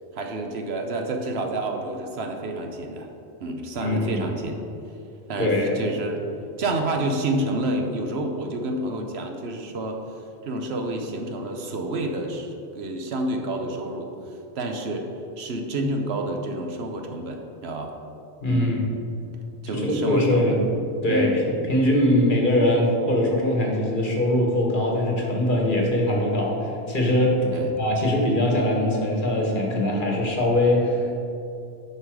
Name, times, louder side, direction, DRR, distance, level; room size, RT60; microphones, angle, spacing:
voice 1, 0.1-3.1 3.4-4.6 5.3-6.2 6.6-10.0 10.4-14.1 14.5-15.1 15.4-17.9 18.5-18.8 19.6-20.6 21.1-21.4 27.5-27.7, right 2 dB, 70° right, 3 dB, 1.1 m, -29 dB
voice 2, 3.8-4.2 5.4-5.8 18.4-18.8 19.7-20.7 21.0-31.2, left 1 dB, 50° left, -1 dB, 1.5 m, -22 dB
9.7 x 5.7 x 4.7 m, 2.6 s
omnidirectional pair, 1.1 m